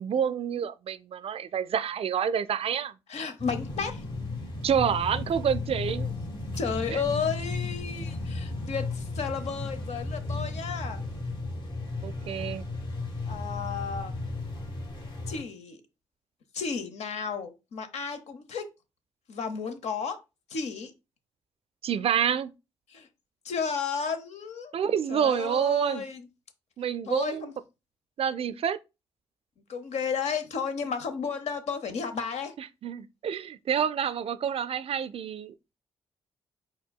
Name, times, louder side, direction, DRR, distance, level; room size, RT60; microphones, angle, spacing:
voice 1, 0.0-2.9 4.6-6.2 6.9-7.0 12.0-12.7 21.8-22.5 24.7-26.0 26.8-27.5 28.2-28.8 32.8-35.5, right 8 dB, 55° right, 0.4 m, -28 dB
voice 2, 3.1-4.1 6.6-11.0 13.3-14.1 15.3-15.8 16.5-18.6 19.3-20.2 20.5-20.9 22.9-23.1 23.4-24.7 25.1-26.3 27.1-27.5 29.7-32.5, left 6 dB, 70° left, 0.8 m, -33 dB
sound 1, 3.4-15.4, left 3 dB, 45° left, 1.4 m, -34 dB
4.4 x 4.3 x 2.2 m
hypercardioid pair, 45°, 12 cm